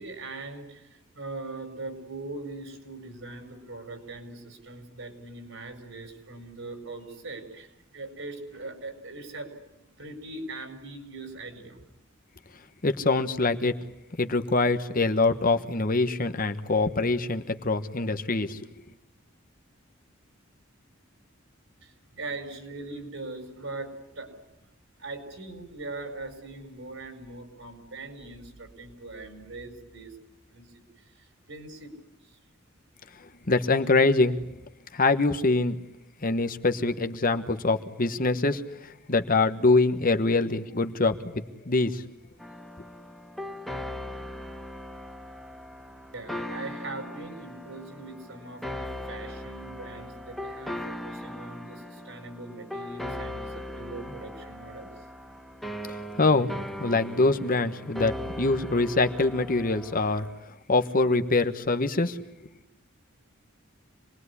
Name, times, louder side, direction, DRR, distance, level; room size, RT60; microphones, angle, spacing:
voice 1, 0.0-11.8 21.8-24.4 25.0-30.2 30.5-31.9 32.2-32.4 46.1-54.9, right 2 dB, 65° right, 7 dB, 5.0 m, -41 dB
voice 2, 12.8-13.7 14.2-18.7 33.5-34.4 34.9-35.8 36.2-38.6 39.1-42.0 56.2-56.5 56.8-58.1 58.4-60.2 60.7-62.2, left 3 dB, 45° left, 8 dB, 1.3 m, -24 dB
sound 1, 42.4-60.4, left 1 dB, ahead, 1.9 m, -39 dB
27.5 x 20.5 x 9.8 m, 0.91 s
head